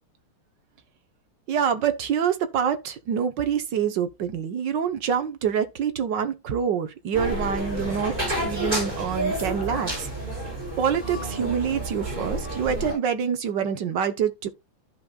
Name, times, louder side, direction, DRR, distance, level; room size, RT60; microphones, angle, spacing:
voice 1, 1.5-8.1 8.4-10.1 10.8-14.5, right 7 dB, 60° right, 1.4 m, -26 dB
sound 1, 7.1-12.9, right 1 dB, 20° right, 6.4 m, -30 dB
14.0 x 5.3 x 2.3 m
omnidirectional pair, 2.4 m